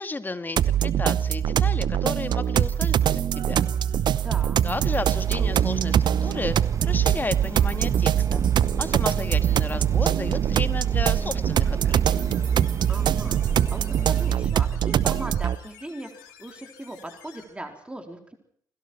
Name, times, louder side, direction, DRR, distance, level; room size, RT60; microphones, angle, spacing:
voice 1, 0.0-3.7 4.6-6.6 6.8-8.4 8.8-12.3, left 3 dB, 20° left, 10 dB, 1.9 m, -33 dB
sound 1, 0.6-15.6, right 10 dB, 45° right, 0.8 m, -23 dB
voice 2, 4.2-4.6 12.9-18.3, right 1 dB, 10° right, 3 dB, 4.1 m, -39 dB
sound 2, 4.7-14.5, right 6 dB, 30° right, 1.6 m, -32 dB
sound 3, 12.1-17.4, left 9 dB, 70° left, 4.1 m, -51 dB
28.5 x 22.5 x 4.5 m, 0.62 s
figure-of-eight pair, 45°, 10 cm